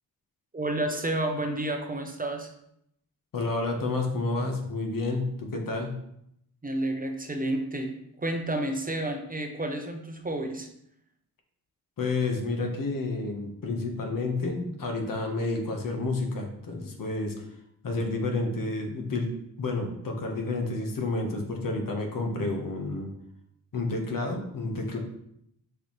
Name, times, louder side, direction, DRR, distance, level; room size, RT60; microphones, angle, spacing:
voice 1, 0.5-2.5 6.6-7.9 8.2-10.7, right 1 dB, 20° right, 4 dB, 0.8 m, -30 dB
voice 2, 3.3-6.0 12.0-17.5 17.8-19.3 19.6-23.1 23.7-25.0, left 2 dB, 60° left, 2 dB, 1.4 m, -30 dB
6.6 x 4.4 x 3.3 m, 0.75 s
cardioid pair, 90°, 38 cm